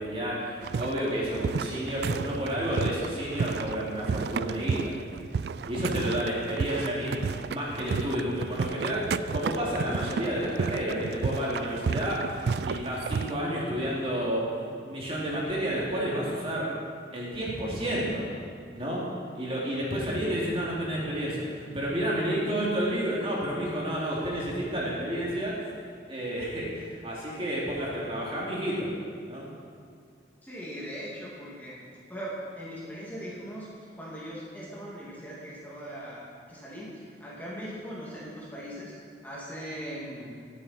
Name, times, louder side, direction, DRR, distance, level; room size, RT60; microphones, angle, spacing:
voice 1, 0.0-5.0 5.7-14.5 14.8-16.7 17.1-18.3 18.8-19.1 19.3-25.6 26.1-28.9 29.3-29.5, equal, 30° right, -5 dB, 2.8 m, -30 dB
sound 1, 0.6-13.3, right 5 dB, 60° right, 0.3 m, -32 dB
voice 2, 30.4-31.8 32.1-33.7 34.0-38.9 39.2-40.4, equal, 10° left, -7 dB, 2.4 m, -40 dB
18.5 x 9.0 x 4.4 m, 2.1 s
head